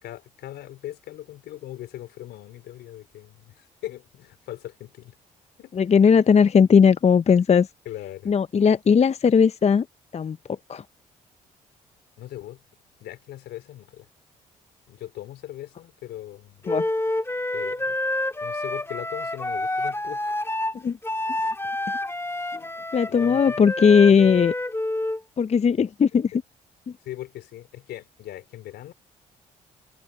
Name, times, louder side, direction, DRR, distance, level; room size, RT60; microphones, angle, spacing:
voice 1, 0.0-5.1 5.6-5.7 7.8-8.3 12.2-12.6 13.0-14.1 14.9-16.7 17.5-18.0 18.4-20.4 21.2-21.4 23.1-24.0 27.0-28.9, left 13 dB, 75° left, 4.6 m, -39 dB
voice 2, 5.7-7.7 8.3-9.8 10.1-10.4 10.7-10.8 16.7-16.8 20.8-21.0 22.9-24.5 25.4-26.3, left 6 dB, 40° left, 0.7 m, -18 dB
Wind instrument woodwind instrument, 16.7-25.2, left 1 dB, 15° left, 2.0 m, -28 dB
hypercardioid pair, 50°, 17 cm